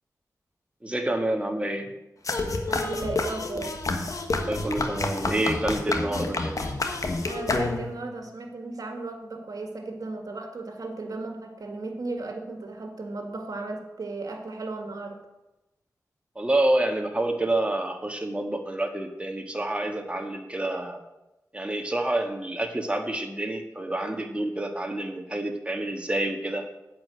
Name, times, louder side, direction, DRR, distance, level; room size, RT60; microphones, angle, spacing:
voice 1, 0.8-1.9 4.5-6.5 16.3-21.0 21.5-26.7, right 1 dB, 20° right, 4 dB, 1.6 m, -28 dB
sound 1, 2.3-8.1, left 3 dB, 60° left, 1.3 m, -29 dB
voice 2, 2.7-3.8 7.2-15.2, right 3 dB, 65° right, 4 dB, 1.9 m, -35 dB
8.8 x 5.2 x 7.6 m, 0.96 s
cardioid pair, 45°, 7 cm